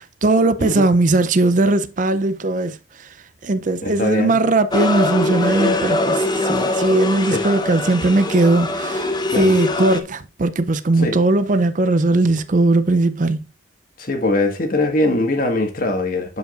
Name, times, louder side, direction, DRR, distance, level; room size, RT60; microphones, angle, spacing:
voice 1, 0.0-2.8 3.4-9.1 9.3-13.4, right 2 dB, 40° right, 0.5 m, -18 dB
voice 2, 3.8-4.4 7.3-7.4 9.3-9.5 11.0-11.2 14.0-16.4, left 2 dB, 45° left, 1.6 m, -21 dB
sound 1, 4.7-10.0, left 2 dB, 20° left, 0.8 m, -22 dB
11.5 x 5.1 x 2.5 m
head